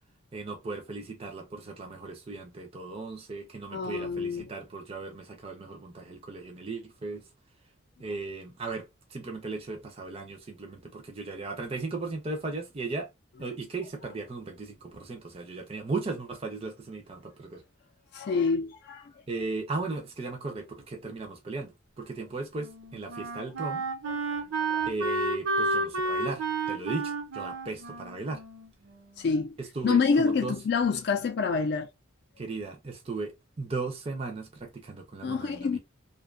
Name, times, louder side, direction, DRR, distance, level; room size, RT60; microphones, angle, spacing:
voice 1, 0.3-7.2 8.0-13.1 13.4-17.6 19.3-23.8 24.8-28.4 29.6-30.5 32.4-35.8, right 3 dB, 30° right, 0.4 m, -37 dB
voice 2, 3.7-4.5 18.1-19.1 24.1-24.9 29.2-29.5 29.8-31.9 35.2-35.8, left 5 dB, 50° left, 0.3 m, -27 dB
Wind instrument woodwind instrument, 22.1-29.4, right 3 dB, 80° right, 0.9 m, -32 dB
2.6 x 2.2 x 2.3 m
head